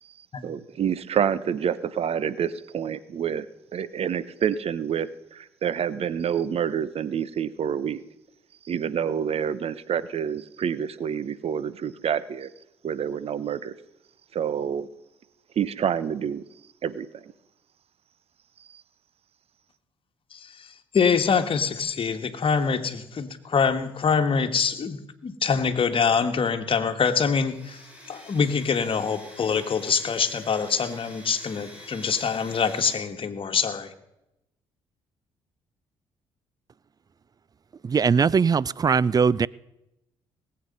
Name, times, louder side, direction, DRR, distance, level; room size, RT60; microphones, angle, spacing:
voice 1, 0.4-3.5 3.7-8.0 8.6-12.5 12.8-13.7 14.3-14.9 15.6-16.5 16.8-17.3 18.7-18.8, right 8 dB, 55° right, 0.9 m, -28 dB
voice 2, 20.3-27.8 28.1-33.9, left 6 dB, 45° left, 1.6 m, -25 dB
Domestic sounds home sounds, 27.4-32.9, left 1 dB, 10° right, 6.0 m, -46 dB
voice 3, 37.8-39.5, right 5 dB, 30° right, 0.4 m, -20 dB
19.0 x 8.1 x 5.4 m
supercardioid pair, 60°, 12 cm